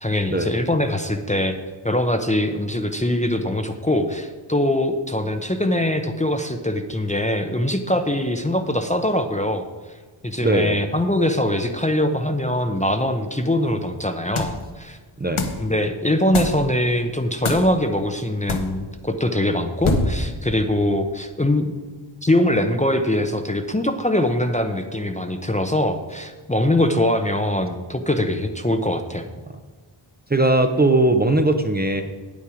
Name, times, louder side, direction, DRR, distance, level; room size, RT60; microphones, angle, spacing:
voice 1, 0.0-1.6 1.8-9.7 10.2-15.0 15.6-21.7 22.2-29.3, left 1 dB, 15° left, 5 dB, 0.7 m, -22 dB
voice 2, 10.4-10.8 15.2-15.4 30.3-32.0, right 2 dB, 20° right, 6 dB, 0.7 m, -19 dB
sound 1, 14.4-14.7 15.4-15.7 16.3-16.7 17.4-17.7 18.5-18.7 19.8-20.3, left 2 dB, 75° left, 1.2 m, -23 dB
9.2 x 8.5 x 5.0 m, 1.3 s
wide cardioid pair, 90°, 50 cm